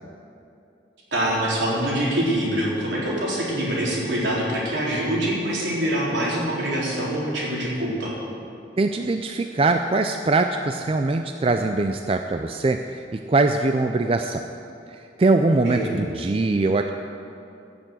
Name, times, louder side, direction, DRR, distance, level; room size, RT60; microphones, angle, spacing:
voice 1, 1.1-8.1 15.6-16.0, right 1 dB, 75° right, -5 dB, 3.9 m, -24 dB
voice 2, 8.8-14.4 15.2-16.9, right 3 dB, 30° right, 6 dB, 0.4 m, -22 dB
15.5 x 6.9 x 7.7 m, 2.7 s
head